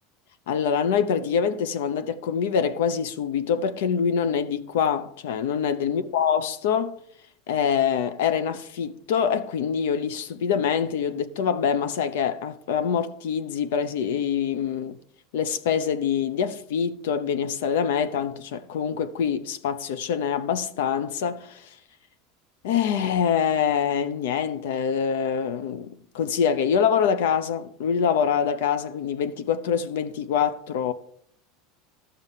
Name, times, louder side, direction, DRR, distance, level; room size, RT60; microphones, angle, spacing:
voice 1, 0.5-7.0 7.5-15.0 15.3-21.7 22.6-30.9, left 7 dB, 85° left, 0.8 m, -25 dB
12.5 x 6.8 x 5.7 m
supercardioid pair, 175°, 0 cm